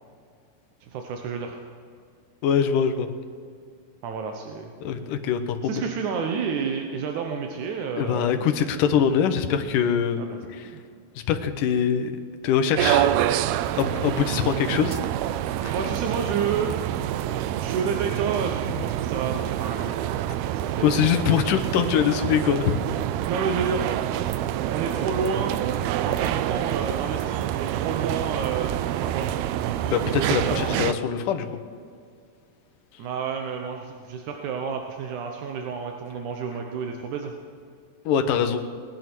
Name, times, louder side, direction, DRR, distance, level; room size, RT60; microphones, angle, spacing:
voice 1, 0.8-1.6 4.0-4.7 5.6-8.6 10.2-10.8 15.7-16.8 17.6-21.0 23.3-24.0 24.7-25.5 26.0-29.3 30.1-30.8 33.0-37.3, right 6 dB, 70° right, 3 dB, 2.0 m, -30 dB
voice 2, 2.4-3.1 4.8-5.8 8.0-10.2 10.5-10.7 11.3-12.1 12.4-13.1 13.8-15.0 15.6-15.7 20.8-22.8 29.9-31.5 38.1-38.6, left 8 dB, 70° left, 7 dB, 2.3 m, -23 dB
sound 1, 12.8-30.9, right 12 dB, 90° right, 2.6 m, -27 dB
19.5 x 11.0 x 6.1 m, 2.2 s
omnidirectional pair, 4.4 m